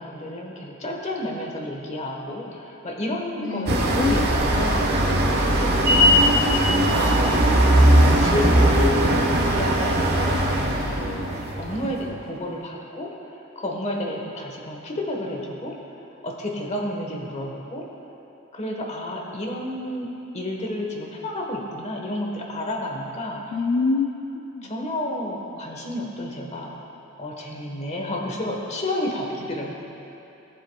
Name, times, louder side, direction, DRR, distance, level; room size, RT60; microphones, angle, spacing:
voice 1, 0.0-4.9 5.5-6.1 6.7-7.7 8.2-9.0 9.4-10.4 10.9-15.8 16.2-17.9 18.5-23.7 24.6-26.8 27.2-29.7, left 1 dB, 35° left, 0 dB, 1.2 m, -31 dB
voice 2, 3.4-4.3 4.5-4.7 5.9-6.5 23.5-24.1 24.3-24.7, left 4 dB, 70° left, 2 dB, 0.5 m, -27 dB
sound 1, 3.7-12.0, right 1 dB, 55° right, 1.1 m, -19 dB
18.0 x 7.5 x 2.3 m, 2.9 s
head